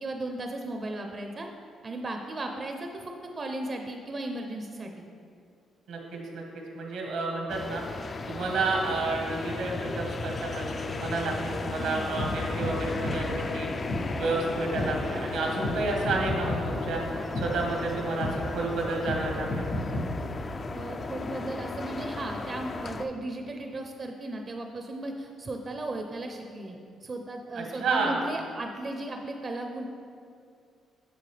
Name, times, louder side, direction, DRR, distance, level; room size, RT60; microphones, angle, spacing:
voice 1, 0.0-1.5 1.8-5.0 11.8-12.1 20.7-29.8, right 2 dB, 35° right, 3 dB, 0.6 m, -36 dB
voice 2, 5.9-6.4 6.7-7.8 8.3-13.7 14.2-17.0 17.4-19.7 27.5-28.1, right 3 dB, 85° right, 0 dB, 1.4 m, -30 dB
sound 1, 7.5-23.1, left 3 dB, 35° left, 0.4 m, -35 dB
sound 2, 12.2-12.3 12.6-12.7 13.0-13.2 13.9-14.0 14.8-14.9 15.6-15.8 16.0-16.6 17.3-17.5 18.2-18.3 19.1-19.2 19.5-20.1, left 1 dB, 85° left, 1.5 m, -31 dB
7.7 x 6.9 x 3.3 m, 2.4 s
cardioid pair, 90°, 0 cm